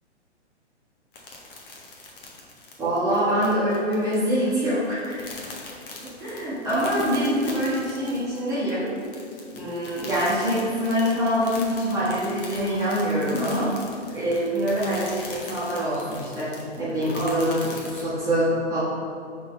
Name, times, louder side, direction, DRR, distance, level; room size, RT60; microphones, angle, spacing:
sound 1, 1.1-18.1, left 3 dB, 50° left, 1.3 m, -41 dB
voice 1, 2.8-5.3 6.0-8.9 9.5-13.7 14.1-18.8, equal, 10° right, -11 dB, 1.4 m, -25 dB
6.2 x 3.7 x 4.2 m, 2.4 s
figure-of-eight pair, 115°, 34 cm